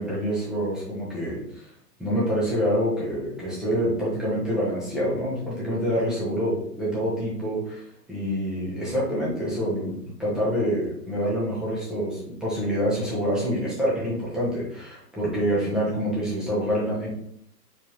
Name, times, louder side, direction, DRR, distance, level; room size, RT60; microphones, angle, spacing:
voice 1, 0.0-1.7 2.0-9.9 10.2-17.1, equal, ahead, -8 dB, 0.4 m, -26 dB
4.3 x 3.3 x 2.9 m, 0.69 s
hypercardioid pair, 120°, 48 cm